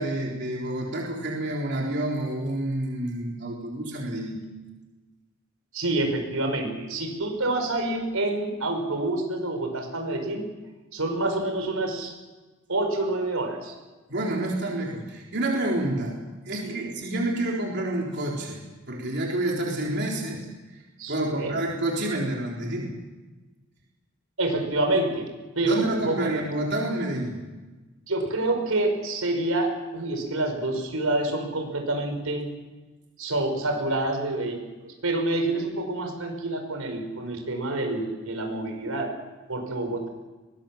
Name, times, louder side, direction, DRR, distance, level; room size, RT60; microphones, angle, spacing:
voice 1, 0.0-4.4 14.1-16.2 16.5-20.8 21.1-23.0 25.6-27.4, right 1 dB, 55° right, -2 dB, 3.9 m, -28 dB
voice 2, 5.7-10.5 10.9-12.1 12.7-13.7 16.6-16.9 21.0-21.6 24.4-25.3 25.5-26.3 28.1-32.5 33.2-39.1 39.5-40.1, right 2 dB, 90° right, 4 dB, 5.2 m, -27 dB
23.0 x 19.5 x 7.4 m, 1.2 s
head